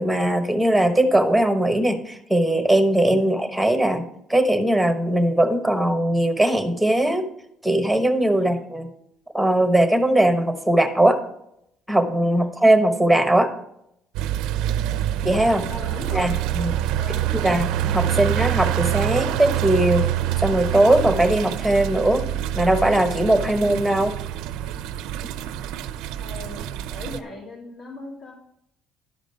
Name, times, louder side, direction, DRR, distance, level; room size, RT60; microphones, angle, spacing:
voice 1, 0.0-4.0 4.3-7.3 7.6-8.9 9.3-11.2 11.9-13.5 15.2-15.6 16.1-16.7 17.3-20.1 20.4-22.3 22.5-24.2, right 1 dB, ahead, 7 dB, 1.1 m, -20 dB
sound 1, 14.1-27.2, right 12 dB, 90° right, 0.5 m, -26 dB
voice 2, 14.7-15.0 15.7-16.4 16.9-17.6 18.1-18.2 25.4-25.6 26.2-28.3, left 2 dB, 50° left, -6 dB, 3.5 m, -39 dB
11.5 x 5.0 x 6.6 m, 0.76 s
cardioid pair, 125°, 0 cm